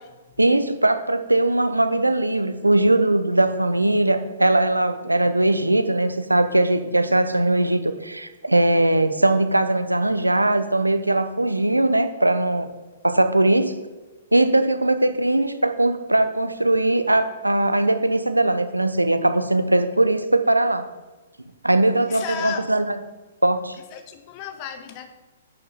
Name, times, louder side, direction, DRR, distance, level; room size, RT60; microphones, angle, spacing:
voice 1, 0.4-12.7 13.0-13.7 14.3-20.8 21.6-23.0 23.4-23.8, right 2 dB, 90° right, 10 dB, 0.7 m, -20 dB
voice 2, 22.1-22.7 23.9-25.1, left 9 dB, 35° left, 8 dB, 1.0 m, -33 dB
10.0 x 6.4 x 4.2 m, 1.2 s
figure-of-eight pair, 115°, 0 cm